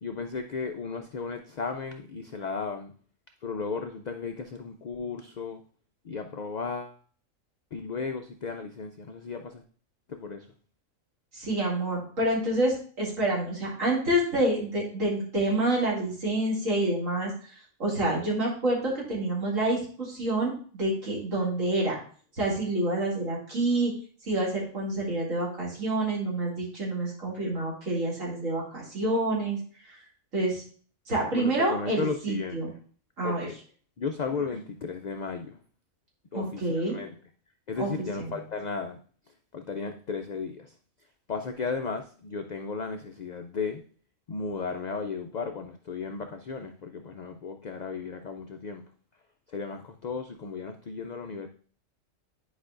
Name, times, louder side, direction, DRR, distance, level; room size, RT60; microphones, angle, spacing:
voice 1, 0.0-2.9 3.4-5.6 6.0-7.0 7.7-9.6 10.1-10.5 31.3-32.6 33.2-33.6 34.0-35.6 36.3-37.1 37.7-39.0 39.5-40.7 41.3-43.8 44.3-48.8 49.5-51.5, left 5 dB, 80° left, 6 dB, 0.3 m, -35 dB
voice 2, 11.3-22.0 22.4-23.9 24.2-29.6 29.9-30.0 30.3-30.6 31.1-32.7 33.2-33.5 36.3-37.0 37.8-37.9 38.2-38.4, right 1 dB, 80° right, -4 dB, 2.7 m, -28 dB
10.0 x 5.0 x 2.5 m, 0.44 s
omnidirectional pair, 1.3 m